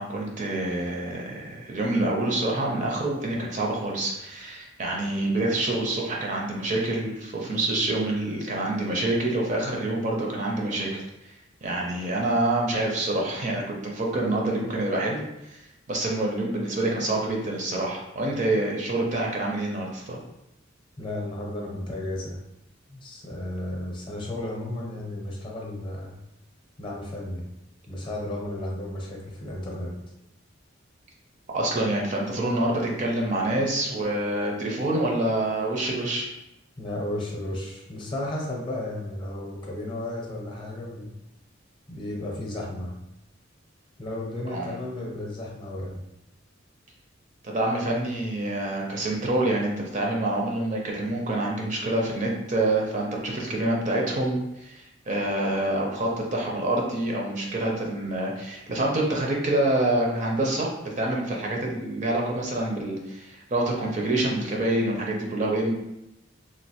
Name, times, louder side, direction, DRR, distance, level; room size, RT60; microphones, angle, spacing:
voice 1, 0.0-11.3 11.6-15.2 15.5-15.6 15.9-20.2 31.5-36.3 44.5-44.8 47.4-65.7, right 1 dB, 40° right, -1 dB, 0.5 m, -27 dB
voice 2, 21.0-22.4 22.9-26.1 26.8-27.5 27.9-29.9 36.8-41.1 41.9-42.9 44.0-46.0, left 1 dB, 25° left, -2 dB, 0.7 m, -33 dB
3.1 x 2.4 x 2.9 m, 0.88 s
head